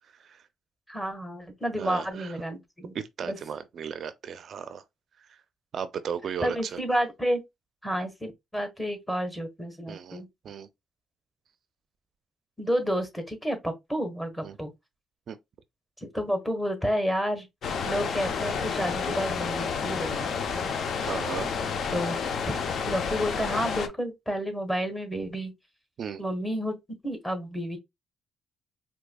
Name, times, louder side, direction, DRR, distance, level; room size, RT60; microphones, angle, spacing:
voice 1, 0.9-3.0 3.2-3.4 6.4-7.4 7.8-10.3 12.6-14.7 16.0-17.5 17.9-20.7 21.9-22.6 22.9-25.5 26.2-26.8 27.0-27.8, equal, 10° left, 1.3 m, -30 dB
voice 2, 1.8-2.3 2.9-4.8 5.3-5.4 5.7-6.8 9.9-10.7 14.4-14.6 15.3-15.4 21.0-21.5 26.0-26.2, right 7 dB, 60° right, 0.4 m, -35 dB
sound 1, 17.6-23.9, left 6 dB, 60° left, 0.6 m, -30 dB
4.4 x 2.7 x 2.2 m
cardioid pair, 90°, 0 cm